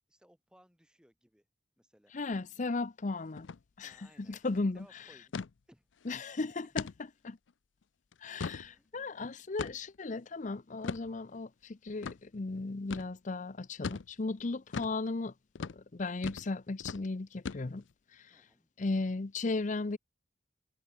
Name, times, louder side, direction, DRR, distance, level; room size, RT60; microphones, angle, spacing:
voice 1, 0.1-1.5 1.8-2.2 3.8-4.4 4.7-5.3 5.7-5.9 8.6-8.9 18.3-18.7, equal, 5° right, 6.8 m, -63 dB
voice 2, 2.1-3.5 3.8-5.2 6.0-6.9 7.2-7.4 8.2-15.3 15.6-17.8 18.1-18.5 18.8-20.0, left 3 dB, 40° left, 0.6 m, -36 dB
sound 1, 3.4-3.6 3.9-4.0 4.4-4.6 5.3-5.5 6.0-6.1 6.8-7.0 7.5-7.6 8.1-8.7 9.6-10.0 10.8-11.1 12.0-12.2 12.9-13.1 13.8-14.1 14.7-15.0 15.5-15.8 16.2-16.5 16.8-17.0 17.4-17.9, left 5 dB, 85° left, 0.5 m, -38 dB
head